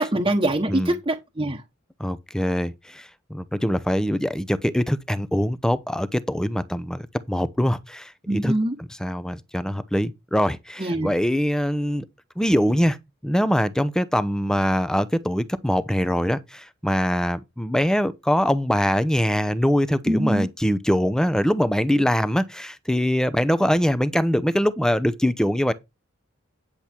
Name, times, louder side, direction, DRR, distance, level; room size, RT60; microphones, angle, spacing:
voice 1, 0.0-1.6 8.3-8.7 10.8-11.1 20.1-20.5, right 1 dB, 25° right, 1.2 m, -23 dB
voice 2, 2.0-8.5 8.8-12.0 12.4-13.0 13.2-25.7, equal, 5° left, 0.8 m, -23 dB
10.5 x 7.2 x 4.5 m
head